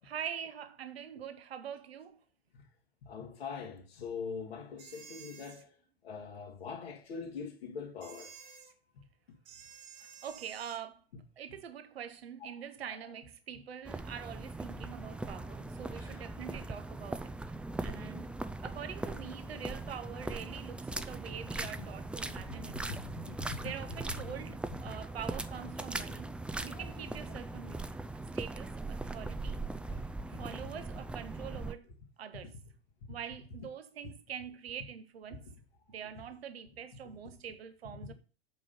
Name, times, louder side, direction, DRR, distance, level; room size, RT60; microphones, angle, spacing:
voice 1, 0.0-2.2 10.0-11.0 11.4-17.3 17.8-18.3 18.6-22.8 23.6-26.3 26.6-27.9 28.3-29.7 29.9-31.9 32.2-32.6 33.1-35.5 35.9-38.1, right 8 dB, 75° right, 0.8 m, -44 dB
voice 2, 3.0-5.7 6.0-8.7 15.9-16.2 17.8-18.0 22.9-23.6 26.7-26.8 30.3-30.5, left 5 dB, 70° left, 2.3 m, -43 dB
sound 1, 4.8-5.6 8.0-8.7 9.5-10.8, right 7 dB, 50° right, 1.4 m, -52 dB
sound 2, 13.8-31.7, right 2 dB, 5° right, 0.4 m, -40 dB
8.4 x 5.1 x 5.6 m
figure-of-eight pair, 85°, 31 cm